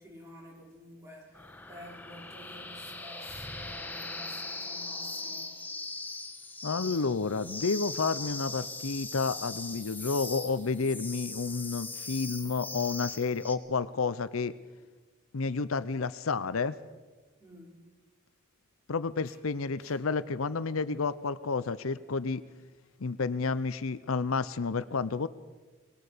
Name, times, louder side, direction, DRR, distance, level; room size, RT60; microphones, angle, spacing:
voice 1, 0.0-5.5 17.4-17.7 19.3-19.4 19.8-20.0, equal, 15° right, -2 dB, 5.5 m, -50 dB
sound 1, 1.3-13.6, left 3 dB, 10° left, 1.2 m, -40 dB
voice 2, 6.6-14.5 15.3-16.7 18.9-22.4 23.0-25.3, left 4 dB, 80° left, 15 dB, 0.7 m, -30 dB
23.0 x 19.5 x 6.8 m, 1.3 s
head